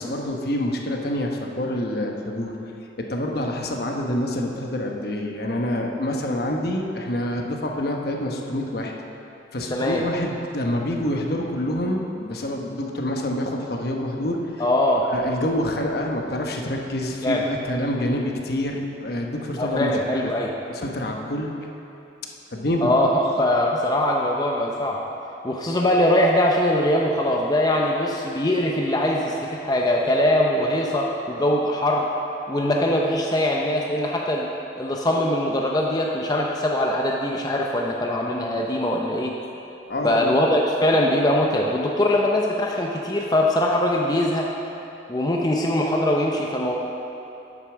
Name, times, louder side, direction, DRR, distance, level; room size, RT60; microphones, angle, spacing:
voice 1, 0.0-2.5 3.1-8.9 9.5-14.5 15.0-20.3 20.7-21.5 22.5-23.1 39.9-40.4, left 1 dB, 60° left, 1 dB, 1.0 m, -27 dB
voice 2, 9.7-10.0 14.6-15.0 17.2-17.4 19.6-20.5 22.8-25.0 25.4-32.1 32.5-34.5 34.8-39.3 40.0-44.5 45.1-46.8, left 1 dB, 20° left, -1 dB, 0.6 m, -22 dB
8.9 x 8.2 x 6.1 m, 2.9 s
head